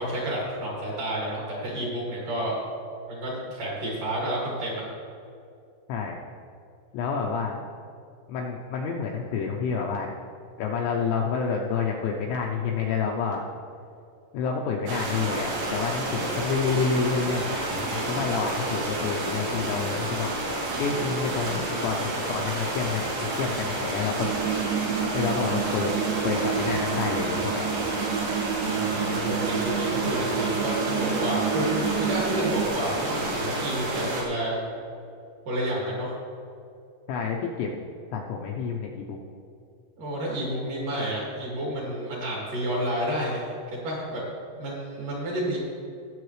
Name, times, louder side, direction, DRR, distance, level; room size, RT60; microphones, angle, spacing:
voice 1, 0.0-2.6 3.1-4.8 28.6-34.6 35.5-36.1 40.0-44.2 44.6-45.6, equal, 50° right, -5 dB, 3.2 m, -30 dB
voice 2, 6.9-7.6 8.3-10.1 10.6-13.5 14.3-20.3 20.8-24.3 25.1-25.9 26.2-27.7 37.1-37.8 38.1-39.2, left 5 dB, 80° left, 0 dB, 2.7 m, -28 dB
sound 1, 14.9-34.2, right 2 dB, 70° right, 4.8 m, -30 dB
sound 2, 24.2-32.7, right 9 dB, 90° right, 2.6 m, -29 dB
20.0 x 7.9 x 3.2 m, 2.5 s
omnidirectional pair, 6.0 m